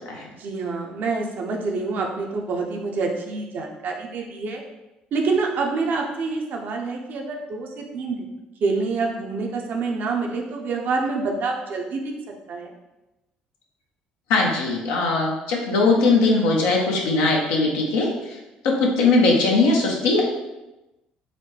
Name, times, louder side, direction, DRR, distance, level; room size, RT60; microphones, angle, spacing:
voice 1, 0.4-4.6 5.1-8.3 8.6-12.0 12.5-12.7, right 4 dB, 55° right, 1 dB, 0.6 m, -27 dB
voice 2, 14.3-18.4 18.6-20.2, left 3 dB, 75° left, -1 dB, 0.7 m, -20 dB
4.1 x 2.1 x 3.2 m, 1.0 s
hypercardioid pair, 55°, 4 cm